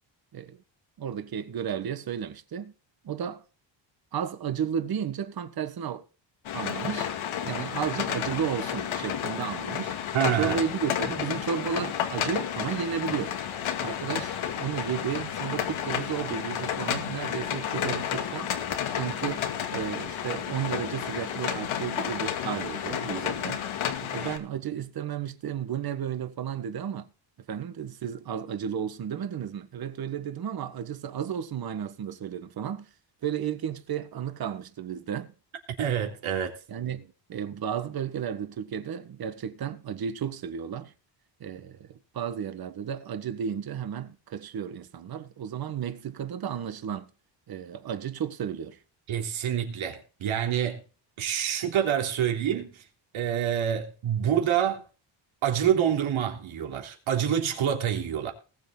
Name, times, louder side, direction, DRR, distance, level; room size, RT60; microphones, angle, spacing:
voice 1, 1.0-2.7 3.0-3.4 4.1-6.0 6.5-7.1 7.4-9.9 10.4-13.4 13.8-18.5 19.0-23.6 24.1-27.1 27.5-32.9 33.2-35.3 36.7-40.9 41.4-47.1 47.5-48.8, right 8 dB, 50° right, 1.4 m, -33 dB
sound 1, 6.4-24.4, left 9 dB, 80° left, 2.4 m, -31 dB
voice 2, 10.1-10.6 35.8-36.5 49.1-50.8 51.2-52.8 53.1-54.8 55.4-58.3, right 9 dB, 85° right, 3.4 m, -27 dB
19.5 x 8.2 x 3.8 m
cardioid pair, 160°, 47 cm